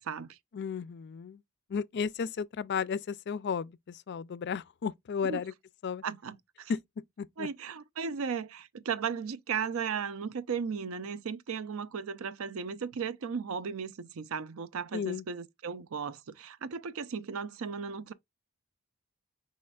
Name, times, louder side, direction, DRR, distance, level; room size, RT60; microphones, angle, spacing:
voice 1, 0.0-0.4 5.2-5.4 6.0-6.7 7.4-18.1, right 6 dB, 70° right, 0.5 m, -36 dB
voice 2, 0.5-1.4 1.7-5.5 5.8-6.0 7.2-7.5 14.9-15.2, left 6 dB, 50° left, 0.4 m, -34 dB
5.1 x 4.2 x 2.3 m
head